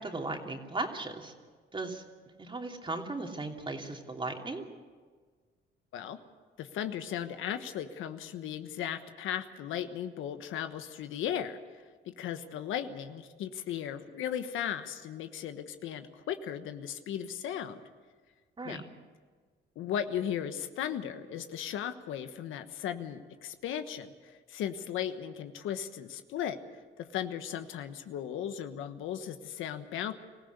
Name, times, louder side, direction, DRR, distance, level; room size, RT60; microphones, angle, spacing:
voice 1, 0.0-1.3 1.7-2.0 2.4-4.6 18.6-18.8, right 2 dB, 25° right, 2 dB, 2.8 m, -37 dB
voice 2, 6.6-17.8 18.6-18.8 19.7-26.6 27.0-30.2, left 9 dB, 85° left, 9 dB, 1.3 m, -36 dB
23.5 x 15.5 x 8.2 m, 1.5 s
cardioid pair, 90°, 20 cm